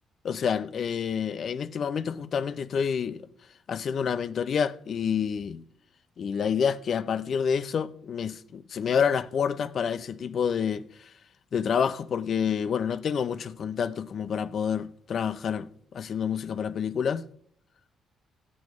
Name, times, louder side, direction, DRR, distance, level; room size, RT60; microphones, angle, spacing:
voice 1, 0.2-3.3 3.7-5.6 6.2-10.8 11.5-15.7 15.9-17.2, left 7 dB, 55° left, 0.6 m, -28 dB
14.5 x 8.6 x 3.1 m
cardioid pair, 90°, 0 cm